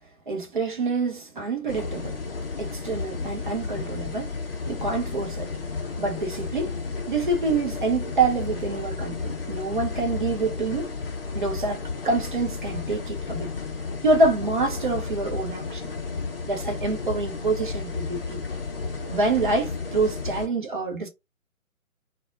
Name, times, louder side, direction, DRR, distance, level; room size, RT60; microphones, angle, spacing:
voice 1, 0.3-2.2 2.6-4.3 4.7-5.5 6.0-6.8 7.1-10.9 11.3-13.5 14.0-15.9 16.4-18.4 19.1-21.1, right 3 dB, 35° right, 0.7 m, -26 dB
sound 1, 1.7-20.5, left 4 dB, 45° left, 0.6 m, -33 dB
2.2 x 2.1 x 3.6 m
figure-of-eight pair, 140°, 42 cm